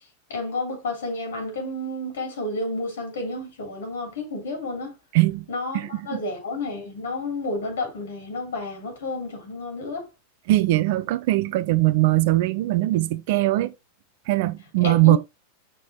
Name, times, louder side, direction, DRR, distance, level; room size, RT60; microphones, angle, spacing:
voice 1, 0.3-4.9 5.5-10.1 14.8-15.2, left 2 dB, 60° left, 3.0 m, -31 dB
voice 2, 5.1-5.4 5.7-6.2 10.5-13.7 14.3-15.2, right 17 dB, 50° right, 0.5 m, -21 dB
6.2 x 4.5 x 3.6 m
figure-of-eight pair, 90°, 0 cm